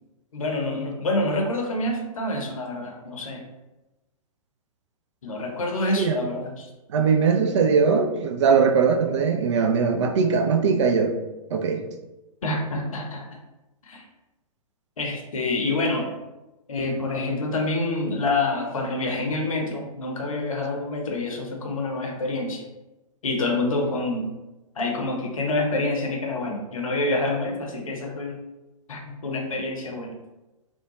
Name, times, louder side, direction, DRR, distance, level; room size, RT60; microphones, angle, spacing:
voice 1, 0.3-3.4 5.2-6.7 12.4-13.2 13.8-14.0 15.0-16.1 16.7-22.6 23.2-24.3 24.7-28.4 28.9-30.1, left 2 dB, 65° left, 1 dB, 0.7 m, -27 dB
voice 2, 6.9-11.2 11.5-11.8, right 5 dB, 55° right, 5 dB, 0.4 m, -20 dB
2.7 x 2.2 x 2.9 m, 1.0 s
figure-of-eight pair, 115°, 18 cm